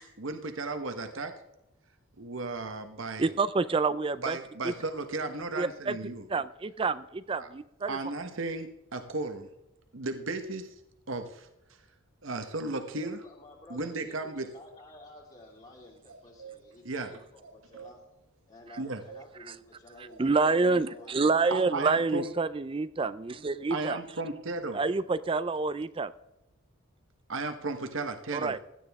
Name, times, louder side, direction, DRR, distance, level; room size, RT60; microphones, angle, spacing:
voice 1, 0.2-1.3 2.2-3.3 4.2-6.2 7.4-7.5 7.9-9.5 9.9-10.7 11.1-11.5 12.2-13.2 13.7-14.5 16.8-17.1 18.8-19.0 21.5-22.3 23.7-24.8 27.3-28.6, right 3 dB, 65° right, 7 dB, 1.1 m, -35 dB
voice 2, 3.2-4.4 5.6-6.0 6.3-8.0 20.2-24.0 24.7-26.1 28.3-28.6, right 4 dB, 25° right, 14 dB, 0.4 m, -28 dB
voice 3, 12.9-18.0 18.5-21.8, left 1 dB, 35° left, -5 dB, 2.8 m, -52 dB
sound 1, 15.4-17.1 17.4-21.3, right 7 dB, 85° right, 4.0 m, -50 dB
16.5 x 12.0 x 3.6 m, 0.93 s
head